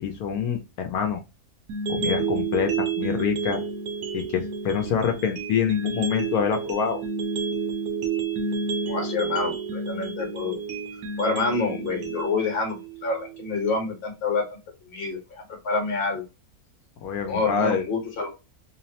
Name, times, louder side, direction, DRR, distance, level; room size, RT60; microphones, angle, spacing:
voice 1, 0.0-1.2 1.9-3.6 4.1-7.0 17.0-17.8, left 7 dB, 80° left, 4 dB, 1.1 m, -26 dB
sound 1, 1.7-13.7, right 5 dB, 75° right, 1.1 m, -30 dB
voice 2, 8.9-10.6 11.2-14.6 14.8-16.2 17.2-18.3, left 3 dB, 45° left, 3 dB, 1.1 m, -27 dB
3.1 x 2.0 x 2.7 m, 0.27 s
omnidirectional pair, 1.6 m